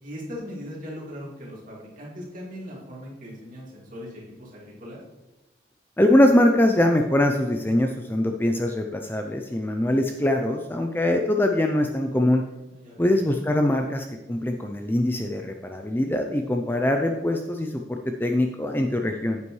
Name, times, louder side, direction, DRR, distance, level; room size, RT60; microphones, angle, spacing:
voice 1, 0.0-5.0 12.7-13.3, equal, 40° right, -4 dB, 2.4 m, -39 dB
voice 2, 6.0-12.4 13.0-19.4, left 1 dB, 10° left, 4 dB, 0.4 m, -23 dB
9.7 x 8.3 x 3.1 m, 1.0 s
head